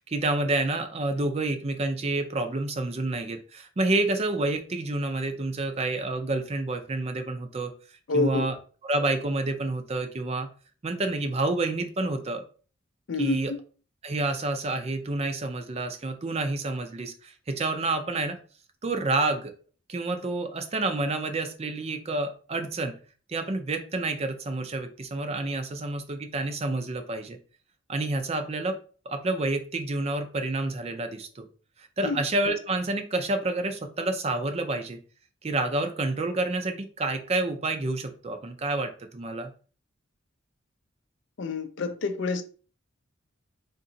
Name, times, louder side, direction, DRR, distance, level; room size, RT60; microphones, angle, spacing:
voice 1, 0.0-7.7 8.1-8.5 8.8-10.5 10.8-12.4 13.2-13.5 14.0-18.4 18.8-19.5 19.9-22.9 23.3-27.4 27.9-28.8 29.1-31.5 31.8-35.0 35.4-39.5, right 2 dB, 30° right, 0.4 m, -29 dB
voice 2, 8.1-8.5 13.1-13.6 32.0-32.2 41.4-42.4, left 3 dB, 60° left, 0.4 m, -28 dB
3.9 x 2.9 x 2.7 m
head